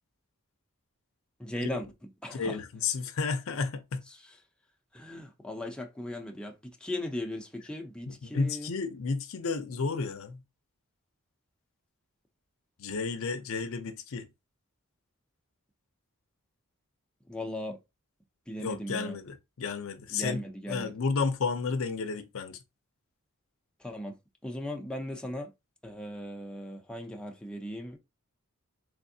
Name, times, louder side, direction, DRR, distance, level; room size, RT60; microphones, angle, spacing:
voice 1, 1.4-1.9 2.2-2.6 4.1-4.2 4.9-8.7 17.3-17.8 18.5-19.2 20.1-20.9 23.8-24.1 24.4-25.5 25.8-28.0, left 1 dB, 5° left, 0.5 m, -37 dB
voice 2, 2.3-4.0 8.1-10.4 12.8-14.3 18.6-22.6, left 4 dB, 65° left, 0.6 m, -32 dB
3.5 x 3.2 x 2.7 m
head